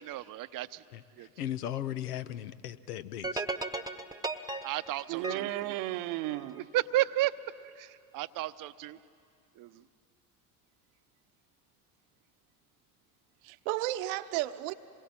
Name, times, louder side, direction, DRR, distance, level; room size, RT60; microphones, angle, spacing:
voice 1, 0.0-0.8 1.2-1.3 4.6-5.5 6.5-7.3 7.8-9.0 9.6-9.8, right 16 dB, 45° right, 0.8 m, -33 dB
voice 2, 0.9-3.4, left 11 dB, 80° left, 0.9 m, -37 dB
sound 1, 3.2-6.6, right 2 dB, 10° right, 1.2 m, -37 dB
voice 3, 5.1-6.7 13.4-14.7, right 16 dB, 65° right, 1.0 m, -33 dB
27.0 x 21.5 x 8.8 m
hypercardioid pair, 75°, 46 cm